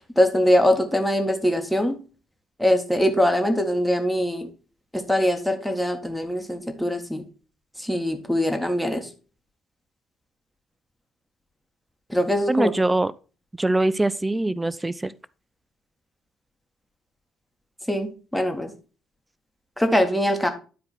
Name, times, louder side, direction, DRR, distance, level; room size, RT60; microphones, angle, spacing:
voice 1, 0.0-2.0 2.6-4.5 4.9-7.2 7.8-9.1 12.1-12.7 17.9-18.7 19.8-20.5, equal, 5° left, 1.5 m, -22 dB
voice 2, 12.5-13.1 13.6-15.1, right 2 dB, 15° right, 0.4 m, -23 dB
10.0 x 4.8 x 4.3 m
figure-of-eight pair, 45°, 0 cm